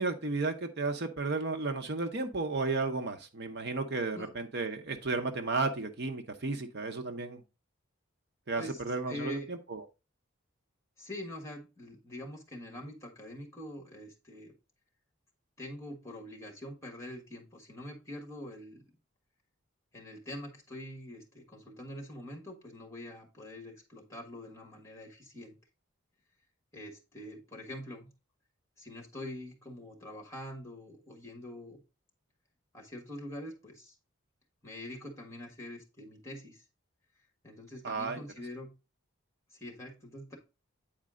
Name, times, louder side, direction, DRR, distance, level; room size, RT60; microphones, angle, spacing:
voice 1, 0.0-7.4 8.5-9.8 37.8-38.2, right 3 dB, 50° right, 6 dB, 0.8 m, -33 dB
voice 2, 8.6-9.5 11.0-14.5 15.6-18.8 19.9-25.6 26.7-28.1 28.8-31.8 32.7-33.9 34.6-36.6 37.4-38.7 39.5-40.4, left 1 dB, 15° left, 2 dB, 1.6 m, -44 dB
8.8 x 4.2 x 3.7 m, 0.28 s
head